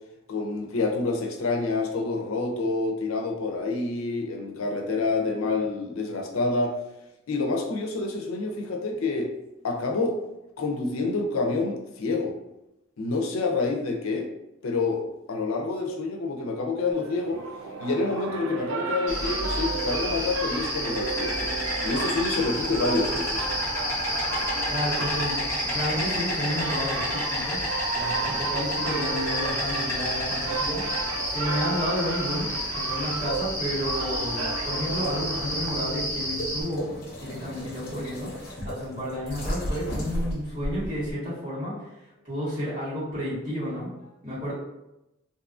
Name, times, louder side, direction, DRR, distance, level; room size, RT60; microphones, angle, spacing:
voice 1, 0.3-6.7 7.3-9.3 9.6-10.2 10.6-12.3 13.0-14.3 14.6-17.4 17.8-21.5 21.8-23.5, left 3 dB, 90° left, 2 dB, 0.5 m, -27 dB
sound 1, 16.9-36.3, right 4 dB, 80° right, 0.4 m, -34 dB
Insect, 19.1-36.6, equal, 15° left, 0.8 m, -30 dB
voice 2, 24.7-27.6 27.9-32.5 32.7-38.3 38.6-43.9 44.2-44.5, equal, 40° right, -10 dB, 1.5 m, -31 dB
sound 2, 34.9-41.1, equal, 50° left, 0.7 m, -35 dB
2.6 x 2.3 x 2.4 m, 0.91 s
head